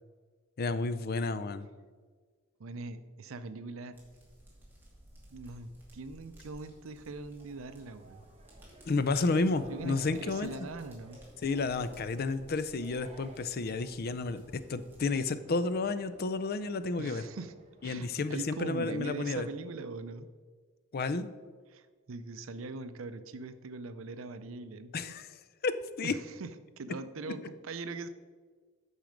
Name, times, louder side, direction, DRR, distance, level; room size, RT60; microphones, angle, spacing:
voice 1, 0.6-1.7 8.9-10.5 11.4-17.2 17.8-19.5 20.9-21.3 24.9-25.3 25.6-26.2, left 3 dB, 50° left, 13 dB, 0.5 m, -31 dB
voice 2, 2.6-4.0 5.3-8.3 9.7-11.2 17.0-17.5 17.8-20.3 21.7-25.2 26.0-28.1, right 3 dB, 75° right, 11 dB, 0.6 m, -41 dB
sound 1, 3.9-15.1, right 1 dB, 10° right, 2.5 m, -57 dB
sound 2, 7.4-18.4, right 2 dB, 30° right, 1.1 m, -56 dB
9.0 x 6.4 x 5.1 m, 1.5 s
head